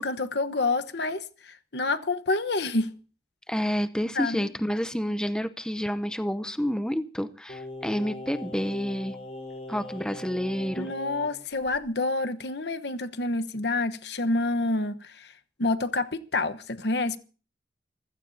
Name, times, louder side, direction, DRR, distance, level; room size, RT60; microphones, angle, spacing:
voice 1, 0.0-2.9 4.1-4.5 10.8-15.3 15.6-17.2, left 2 dB, 75° left, 1.1 m, -28 dB
voice 2, 3.5-9.2 9.7-10.9, equal, 5° left, 0.7 m, -29 dB
Singing, 7.5-11.3 11.7-11.8, left 1 dB, 40° left, 6.1 m, -40 dB
27.0 x 16.0 x 2.8 m
head